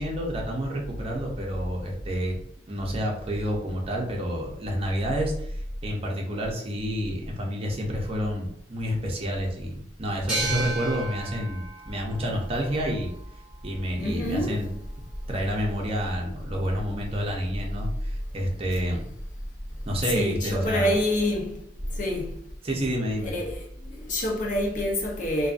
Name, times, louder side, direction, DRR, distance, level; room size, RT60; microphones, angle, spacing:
voice 1, 0.0-2.4 2.7-5.5 5.8-13.1 13.6-14.7 15.3-19.0 19.9-21.0 22.6-23.4, equal, 35° right, 0.6 m, -29 dB
sound 1, 10.3-13.7, right 2 dB, 5° right, 0.9 m, -34 dB
voice 2, 14.0-14.5 20.1-21.6 21.9-22.3 23.2-25.5, left 1 dB, 45° left, 0.7 m, -27 dB
2.5 x 2.3 x 2.4 m
head